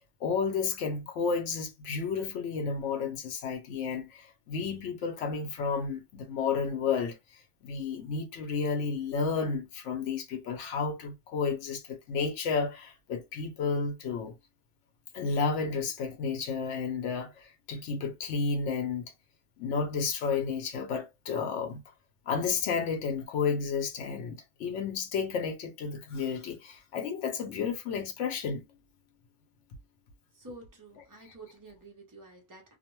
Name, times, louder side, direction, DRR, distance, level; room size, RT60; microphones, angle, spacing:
voice 1, 0.2-7.2 7.6-14.3 15.1-19.1 19.6-21.8 22.3-28.6, left 5 dB, 80° left, 1.0 m, -32 dB
voice 2, 30.3-32.7, right 2 dB, 20° right, 0.6 m, -49 dB
2.4 x 2.1 x 3.0 m
omnidirectional pair, 1.2 m